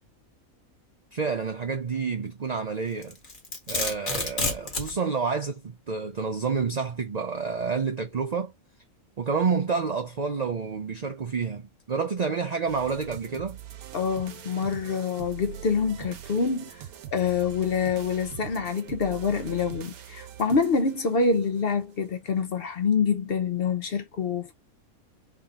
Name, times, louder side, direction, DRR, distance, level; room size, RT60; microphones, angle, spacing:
voice 1, 1.1-3.2 3.7-8.5 9.2-13.6, right 5 dB, 50° right, 0.5 m, -29 dB
Domestic sounds home sounds, 3.0-4.9, left 2 dB, 35° left, 1.3 m, -29 dB
sound 1, 12.7-21.8, right 11 dB, 85° right, 1.2 m, -42 dB
voice 2, 13.9-16.8 17.1-24.5, left 5 dB, 55° left, 0.7 m, -26 dB
3.6 x 3.6 x 2.8 m
omnidirectional pair, 1.5 m